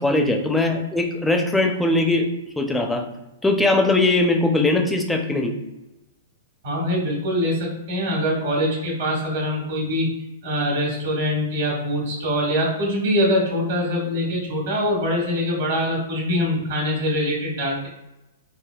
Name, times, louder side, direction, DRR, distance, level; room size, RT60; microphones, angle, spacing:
voice 1, 0.0-2.3 2.6-3.1 3.4-5.6, left 2 dB, 5° left, 3 dB, 0.4 m, -20 dB
voice 2, 6.6-10.1 10.4-17.9, equal, 60° right, -2 dB, 1.4 m, -23 dB
3.4 x 2.1 x 2.3 m, 0.96 s
hypercardioid pair, 120°, 0 cm